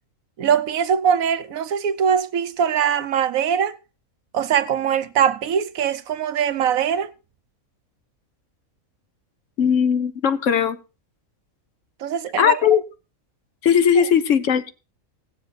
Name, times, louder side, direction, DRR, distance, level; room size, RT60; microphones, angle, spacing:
voice 1, 0.4-3.8 4.3-7.1 12.0-12.7 14.0-14.1, right 8 dB, 85° right, 1.2 m, -22 dB
voice 2, 9.6-10.8 12.4-12.8 13.6-14.7, left 8 dB, 65° left, 1.1 m, -18 dB
17.0 x 7.3 x 4.1 m
omnidirectional pair, 1.4 m